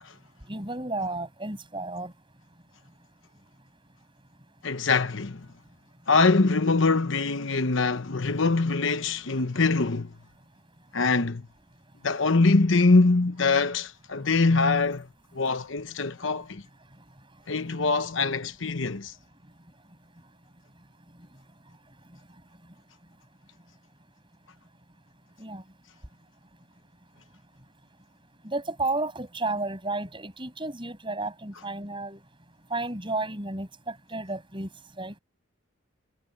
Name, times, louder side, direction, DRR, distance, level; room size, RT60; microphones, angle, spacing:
voice 1, 0.5-2.1 25.4-25.6 28.4-32.2 32.7-34.7 35.0-35.1, right 2 dB, 25° right, 7.5 m, -32 dB
voice 2, 4.6-5.5 6.1-10.1 10.9-11.4 12.0-15.1 15.3-16.6 17.5-19.1, left 3 dB, 65° left, 1.0 m, -23 dB
head